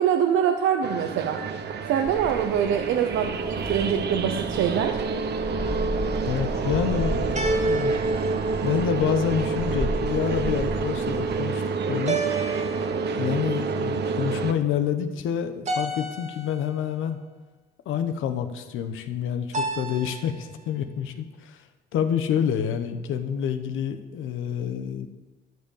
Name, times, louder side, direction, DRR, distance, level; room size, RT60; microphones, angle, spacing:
voice 1, 0.0-1.4 1.9-5.0, right 8 dB, 85° right, 6 dB, 0.8 m, -24 dB
sound 1, 0.8-14.5, right 4 dB, 60° right, 1.0 m, -28 dB
Gull seagull, 2.1-11.4, right 1 dB, 5° left, 1.9 m, -35 dB
sound 2, 2.9-3.6 7.3-9.4 12.1-13.5 15.7-16.9 19.5-20.5, right 2 dB, 35° right, 1.7 m, -31 dB
voice 2, 6.2-8.0 8.6-11.6 11.9-12.2 13.2-17.2 17.8-21.7 21.9-25.1, left 8 dB, 85° left, 8 dB, 1.0 m, -28 dB
12.5 x 5.7 x 7.2 m, 1.2 s
cardioid pair, 90°, 20 cm